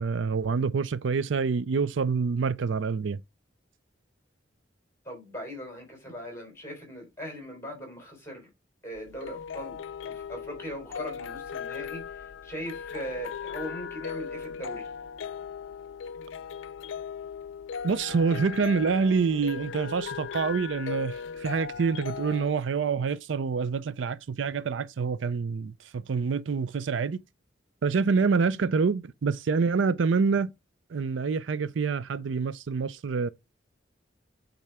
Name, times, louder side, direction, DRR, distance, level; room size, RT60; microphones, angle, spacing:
voice 1, 0.0-3.2 17.8-27.2 27.8-30.5 30.9-33.3, right 5 dB, 80° right, 0.5 m, -27 dB
voice 2, 5.0-8.5 8.8-9.8 10.0-14.9, equal, 15° left, 3.8 m, -39 dB
symphonion o christmas tree, 9.0-22.5, left 6 dB, 85° left, 0.4 m, -38 dB
8.5 x 3.8 x 3.4 m
head